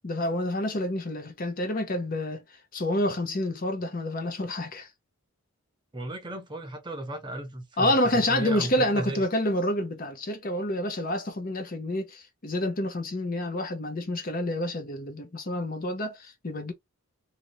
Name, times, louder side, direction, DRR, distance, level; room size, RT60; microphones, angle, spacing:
voice 1, 0.0-2.4 2.7-4.9 7.8-16.7, left 1 dB, 40° left, 0.6 m, -28 dB
voice 2, 5.9-9.3, right 1 dB, 20° right, 0.6 m, -35 dB
2.7 x 2.6 x 2.9 m
head